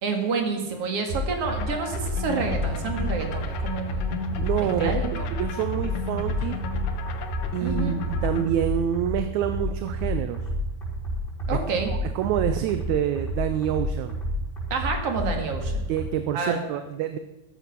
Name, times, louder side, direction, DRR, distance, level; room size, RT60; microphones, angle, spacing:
voice 1, 0.0-4.1 4.8-5.3 7.6-8.0 11.5-11.9 14.7-15.8 16.3-16.6, right 5 dB, 50° right, 4 dB, 3.0 m, -29 dB
sound 1, 1.1-16.1, left 1 dB, 15° left, 5.5 m, -30 dB
sound 2, 1.4-8.5, left 4 dB, 80° left, 2.6 m, -34 dB
voice 2, 4.4-6.6 7.5-10.5 11.5-11.6 11.9-14.1 15.9-17.2, right 10 dB, 75° right, 9 dB, 2.0 m, -27 dB
13.5 x 13.5 x 6.0 m, 0.95 s
omnidirectional pair, 3.6 m